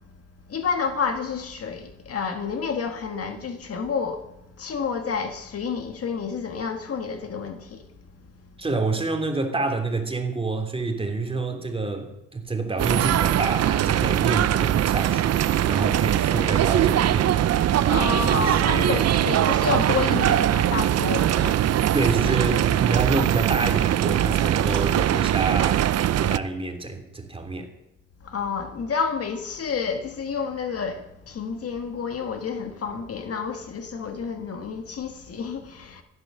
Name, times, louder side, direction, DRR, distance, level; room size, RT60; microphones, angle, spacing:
voice 1, 0.5-4.3 4.6-7.9 17.9-21.7 28.2-36.0, left 5 dB, 50° left, 1.7 m, -29 dB
voice 2, 8.6-19.0 21.9-27.7, right 3 dB, 20° right, 2.8 m, -28 dB
sound 1, 12.8-26.4, right 11 dB, 55° right, 0.6 m, -21 dB
15.0 x 11.0 x 6.7 m
cardioid pair, 90°, 30 cm